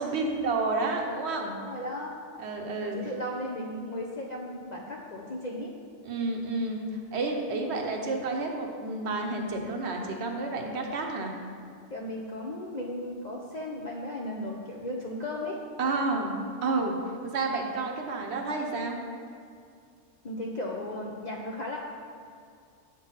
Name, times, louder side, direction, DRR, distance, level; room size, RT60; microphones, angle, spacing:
voice 1, 0.0-1.6 2.4-3.0 6.0-11.3 15.8-17.0 17.2-19.0, right 3 dB, 60° right, 2 dB, 1.0 m, -30 dB
voice 2, 1.6-2.1 2.8-5.7 11.9-15.6 20.2-21.8, left 1 dB, 55° left, -2 dB, 0.5 m, -35 dB
7.5 x 3.8 x 5.6 m, 2.4 s
omnidirectional pair, 1.3 m